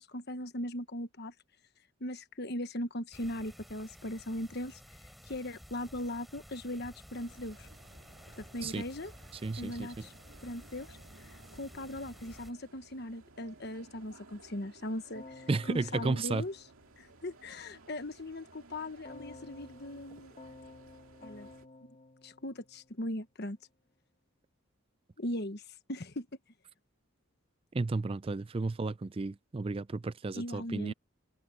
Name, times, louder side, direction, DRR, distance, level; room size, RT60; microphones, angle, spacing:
voice 1, 0.0-1.3 2.0-4.8 5.3-7.7 8.4-9.1 9.6-10.1 10.4-16.6 17.0-20.4 21.2-21.5 22.2-23.6 25.2-25.6 25.9-26.3 30.3-30.9, left 1 dB, 50° left, 1.3 m, -39 dB
sound 1, 3.1-12.5, equal, ahead, 3.7 m, -53 dB
sound 2, 7.1-21.6, right 3 dB, 75° right, 2.2 m, -58 dB
voice 2, 9.4-10.1 15.5-16.4 27.7-30.9, right 3 dB, 25° right, 0.3 m, -33 dB
Keyboard (musical), 15.2-17.5 19.1-23.3, left 2 dB, 30° left, 1.8 m, -53 dB
head